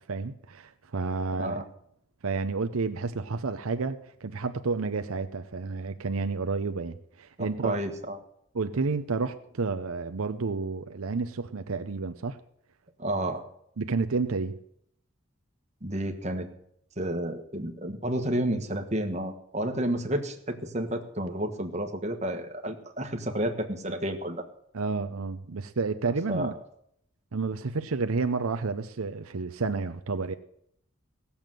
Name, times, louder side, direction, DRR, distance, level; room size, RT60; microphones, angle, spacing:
voice 1, 0.1-1.6 2.2-7.8 8.5-12.4 13.8-14.5 24.7-26.5 27.3-30.4, right 4 dB, 80° right, 0.7 m, -30 dB
voice 2, 7.4-8.2 13.0-13.4 15.8-16.5 17.0-24.4 26.3-26.5, right 1 dB, 30° right, 1.5 m, -31 dB
16.5 x 7.1 x 7.6 m
head